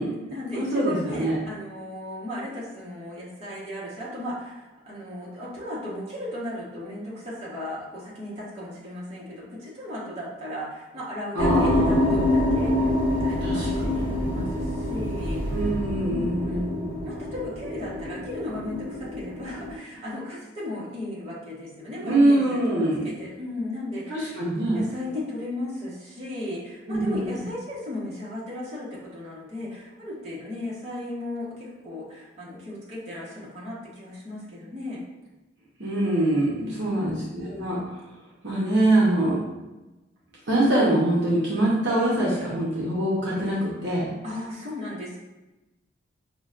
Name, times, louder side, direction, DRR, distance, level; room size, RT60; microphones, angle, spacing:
voice 1, 0.0-15.6 16.0-16.7 17.0-24.3 24.7-35.0 36.6-37.1 44.2-45.2, left 1 dB, 30° right, -8 dB, 1.0 m, -36 dB
voice 2, 0.5-1.4 11.3-12.3 13.4-14.0 15.5-17.0 22.0-23.0 24.1-24.8 26.9-27.4 35.8-38.0 38.4-39.4 40.5-44.1, right 1 dB, 60° right, -6 dB, 0.8 m, -24 dB
sound 1, 11.4-19.7, left 1 dB, 90° left, 1.0 m, -26 dB
5.7 x 2.2 x 2.4 m, 1.1 s
head